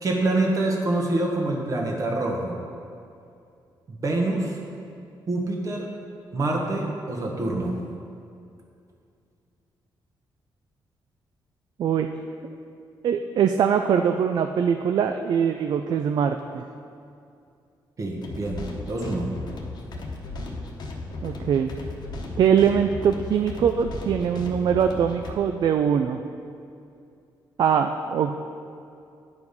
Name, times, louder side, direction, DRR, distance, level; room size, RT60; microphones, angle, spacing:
voice 1, 0.0-2.6 3.9-4.6 5.3-5.9 6.3-7.8 18.0-19.3, right 2 dB, 40° right, 0 dB, 1.3 m, -26 dB
voice 2, 13.0-16.6 21.2-21.7 22.4-26.2 27.6-28.3, right 7 dB, 55° right, 7 dB, 0.3 m, -22 dB
sound 1, 18.2-25.3, left 2 dB, 55° left, 1.0 m, -36 dB
9.7 x 4.9 x 5.3 m, 2.5 s
cardioid pair, 130°, 8 cm